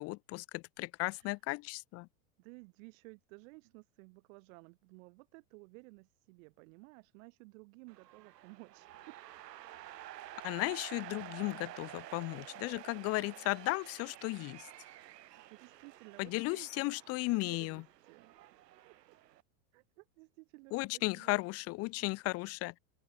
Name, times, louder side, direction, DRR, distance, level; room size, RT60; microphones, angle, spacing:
voice 1, 0.0-2.1 10.4-14.7 16.2-17.8 20.7-22.8, left 23 dB, 30° left, 0.8 m, -35 dB
voice 2, 2.4-9.3 15.1-19.2 19.7-21.4, right 28 dB, 55° right, 6.6 m, -56 dB
sound 1, 7.9-19.4, right 14 dB, 85° right, 1.8 m, -51 dB
open air
supercardioid pair, 145°, 48 cm